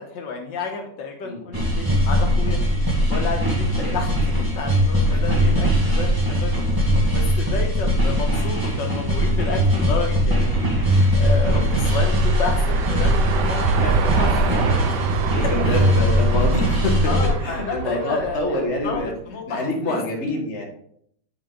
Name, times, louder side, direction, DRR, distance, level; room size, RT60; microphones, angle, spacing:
voice 1, 0.0-14.6 15.4-15.9 17.1-19.0 19.3-20.0, left 4 dB, 85° left, 3 dB, 1.8 m, -31 dB
sound 1, 1.5-17.3, equal, 10° right, 1.6 m, -20 dB
sound 2, 9.9-19.1, right 5 dB, 75° right, 1.4 m, -27 dB
voice 2, 15.2-17.1 17.4-19.1 19.5-20.6, left 1 dB, 40° left, 0 dB, 1.7 m, -26 dB
9.7 x 4.9 x 3.8 m, 0.67 s
omnidirectional pair, 1.9 m